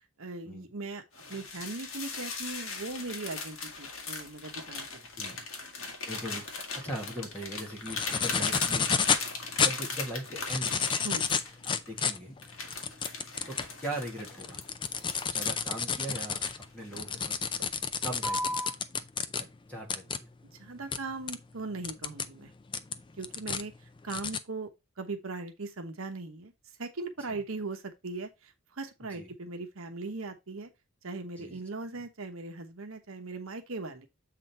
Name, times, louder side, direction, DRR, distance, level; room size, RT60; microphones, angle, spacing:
voice 1, 0.2-1.0 1.3-5.4 11.0-11.3 20.6-22.5 23.2-23.7 24.0-24.7 25.0-26.5 26.8-30.7 31.0-34.1, right 3 dB, 65° right, 1.1 m, -39 dB
sound 1, 1.1-11.9 12.4-15.6 16.2-17.1 17.4-17.7 18.2-18.7, left 3 dB, 65° left, 1.8 m, -38 dB
voice 2, 6.1-8.9 9.6-10.8 11.6-12.3 13.5-14.6 15.3-16.4 16.7-17.4 18.0-18.6 19.4-20.3 27.3-27.4 29.0-29.3 31.4-31.6, right 1 dB, 5° left, 2.0 m, -40 dB
sound 2, 7.9-9.3 9.6-9.7 10.3-13.7 14.2-19.4 19.9-20.2 20.9-21.0 21.3-21.4 21.8-22.3 22.7-23.6 24.1-24.4, left 6 dB, 20° left, 0.4 m, -30 dB
7.5 x 3.9 x 4.3 m
head